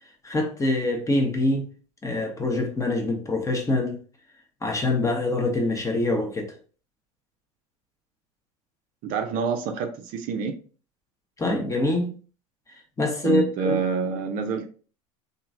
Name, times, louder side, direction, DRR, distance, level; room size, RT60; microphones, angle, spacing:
voice 1, 0.2-1.7 2.0-4.0 4.6-6.5 11.4-12.1 13.0-13.8, left 2 dB, 15° left, 0.8 m, -24 dB
voice 2, 9.0-10.6 13.2-14.7, right 5 dB, 50° right, 0.5 m, -27 dB
2.9 x 2.5 x 2.5 m
hypercardioid pair, 85°, 18 cm